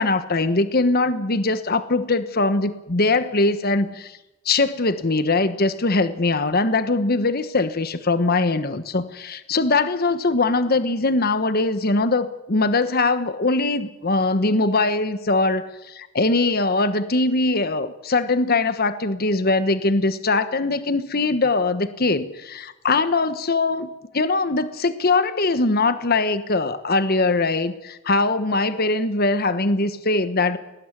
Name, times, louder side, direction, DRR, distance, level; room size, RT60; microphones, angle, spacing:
voice 1, 0.0-4.2 4.4-30.6, left 3 dB, 45° left, 12 dB, 1.2 m, -21 dB
20.0 x 18.5 x 9.8 m, 0.97 s
head